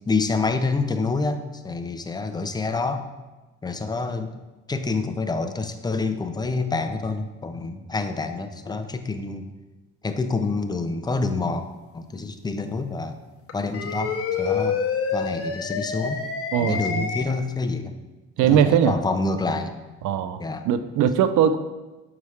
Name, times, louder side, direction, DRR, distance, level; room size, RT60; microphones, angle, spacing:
voice 1, 0.1-3.0 3.6-4.3 4.7-9.5 10.0-11.6 11.9-13.2 13.5-14.8 15.1-16.2 16.6-17.9 18.4-19.7 20.4-20.7, left 3 dB, 15° left, 8 dB, 0.4 m, -27 dB
sound 1, 13.5-17.2, left 6 dB, 50° left, 0.9 m, -27 dB
voice 2, 16.5-17.1 18.4-19.0 20.0-21.6, right 8 dB, 75° right, 12 dB, 0.5 m, -20 dB
6.7 x 4.8 x 3.2 m, 1.1 s
cardioid pair, 90°, 30 cm